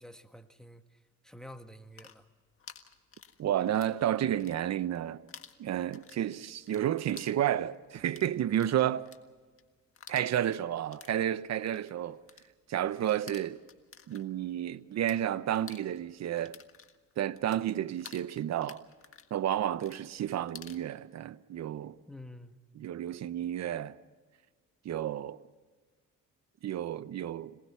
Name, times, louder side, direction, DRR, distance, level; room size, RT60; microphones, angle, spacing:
voice 1, 0.0-2.3 22.1-22.6, left 1 dB, ahead, 1.4 m, -49 dB
sound 1, 1.7-4.0 4.3-5.0 5.3-15.2 15.5-20.8, left 7 dB, 45° left, 1.7 m, -52 dB
voice 2, 3.4-5.2 5.6-9.1 10.1-12.2 12.7-13.6 14.1-16.6 17.2-18.8 19.3-22.0 22.8-24.0 24.8-25.4 26.6-27.6, right 11 dB, 60° right, 0.9 m, -31 dB
26.5 x 19.0 x 5.7 m
cardioid pair, 90°, 30 cm